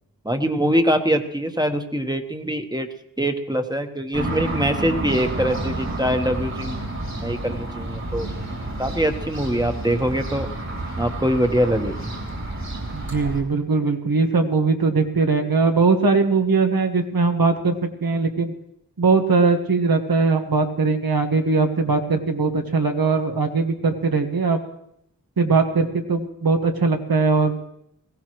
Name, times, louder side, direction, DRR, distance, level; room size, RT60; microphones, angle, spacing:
voice 1, 0.2-2.9 3.2-6.9 7.1-8.3 8.8-10.5 11.0-12.1, equal, 10° right, 6 dB, 1.1 m, -23 dB
sound 1, 4.1-13.4, right 1 dB, 50° right, 3.0 m, -30 dB
voice 2, 12.9-18.5 19.0-24.6 25.4-27.6, right 4 dB, 85° right, 5 dB, 1.4 m, -20 dB
21.0 x 16.5 x 3.1 m, 0.74 s
wide cardioid pair, 75°, 35 cm